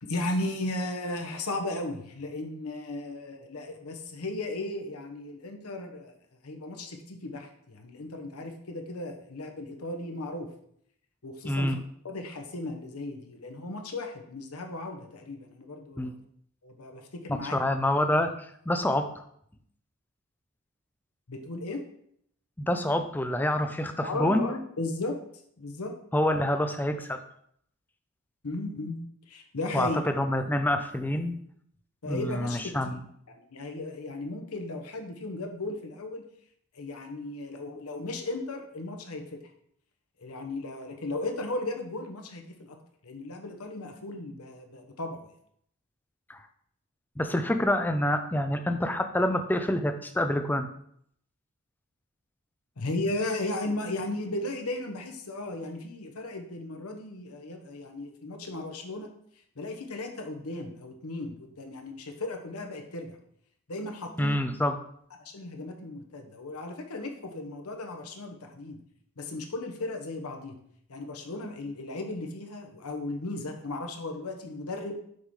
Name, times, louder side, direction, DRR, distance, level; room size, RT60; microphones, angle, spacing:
voice 1, 0.0-6.2 6.4-10.5 11.2-11.8 12.0-16.1 16.6-17.6 21.3-21.8 24.0-25.2 25.6-25.9 28.4-29.0 29.3-30.0 32.0-33.0 33.3-36.2 36.7-39.4 40.2-42.8 43.0-45.3 52.8-59.1 59.6-63.2 63.7-64.4 65.2-68.8 69.2-70.6 70.9-74.9, left 2 dB, 85° left, 4 dB, 1.0 m, -36 dB
voice 2, 11.4-11.8 16.0-16.1 17.3-19.1 22.6-24.4 26.1-27.2 29.7-31.3 32.1-33.0 46.3-46.4 47.2-50.7 64.2-64.8, left 1 dB, 10° left, 7 dB, 0.4 m, -27 dB
6.4 x 3.7 x 4.8 m, 0.68 s
head